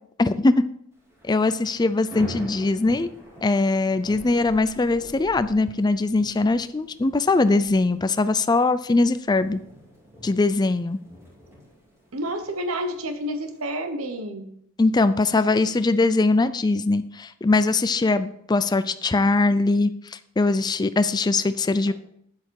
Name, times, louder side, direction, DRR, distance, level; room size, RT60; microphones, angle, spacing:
voice 1, 0.2-0.6 1.2-3.1 3.4-9.6 10.2-11.0 14.8-19.9 20.4-21.9, left 3 dB, 20° left, 12 dB, 0.4 m, -21 dB
Thunder / Rain, 1.0-13.6, equal, 15° right, 2.7 m, -45 dB
voice 2, 12.1-14.4 21.9-22.0, equal, 80° right, 8 dB, 1.0 m, -29 dB
8.6 x 8.1 x 4.6 m, 0.72 s
head